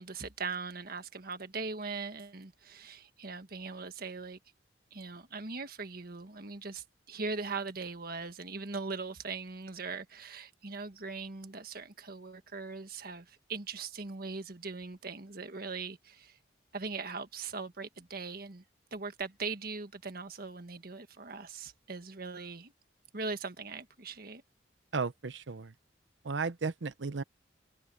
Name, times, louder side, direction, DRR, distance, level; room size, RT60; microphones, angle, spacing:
voice 1, 0.0-4.4 4.9-16.4 16.7-18.6 18.9-22.7 23.1-24.4, right 4 dB, 55° right, 1.7 m, -40 dB
voice 2, 24.9-25.7 26.2-27.2, right 4 dB, 90° right, 0.8 m, -34 dB
head